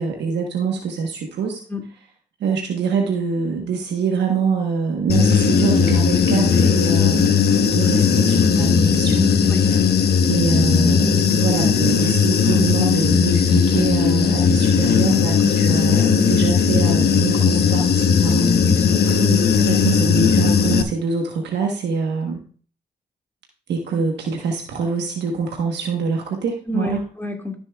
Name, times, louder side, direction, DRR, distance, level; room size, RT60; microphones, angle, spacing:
voice 1, 0.0-1.6 2.4-9.3 10.3-18.5 19.0-22.4 23.7-27.0, right 5 dB, 90° right, 1 dB, 1.2 m, -24 dB
Human voice / Buzz, 5.1-20.8, left 6 dB, 70° left, 1.0 m, -17 dB
voice 2, 18.6-19.2 26.7-27.6, left 1 dB, 10° left, 2 dB, 2.3 m, -28 dB
13.5 x 6.9 x 2.3 m, 0.42 s
cardioid pair, 55°, 17 cm